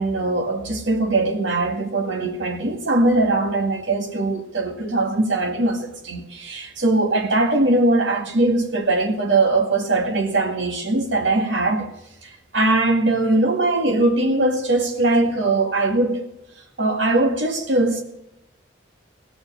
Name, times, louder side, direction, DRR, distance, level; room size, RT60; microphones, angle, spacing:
voice 1, 0.0-11.9 12.2-16.2 16.8-18.0, right 2 dB, 85° right, 2.0 m, -21 dB
16.5 x 7.1 x 7.3 m
head